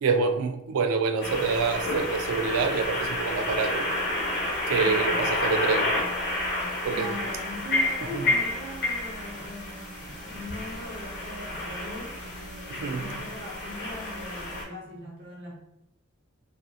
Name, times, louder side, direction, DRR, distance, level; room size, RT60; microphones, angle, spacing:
voice 1, 0.0-3.9 4.7-5.9 6.8-7.1 8.1-8.2 12.8-13.2, right 5 dB, 85° right, 0.3 m, -26 dB
sound 1, 1.2-14.6, left 2 dB, 55° left, 0.9 m, -30 dB
voice 2, 4.8-5.3 6.9-15.5, equal, 55° right, 0.9 m, -40 dB
2.6 x 2.5 x 2.3 m
head